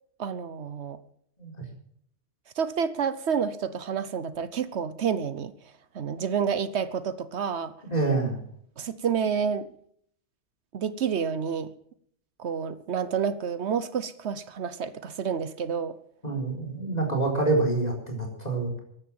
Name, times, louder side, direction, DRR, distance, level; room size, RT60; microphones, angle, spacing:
voice 1, 0.2-1.0 2.6-5.5 5.9-7.7 8.8-9.7 10.7-11.7 12.4-15.9, right 7 dB, 70° right, 14 dB, 1.1 m, -29 dB
voice 2, 7.9-8.4 16.2-18.8, right 3 dB, 35° left, 1 dB, 4.5 m, -26 dB
14.0 x 11.0 x 7.6 m, 0.66 s
omnidirectional pair, 1.2 m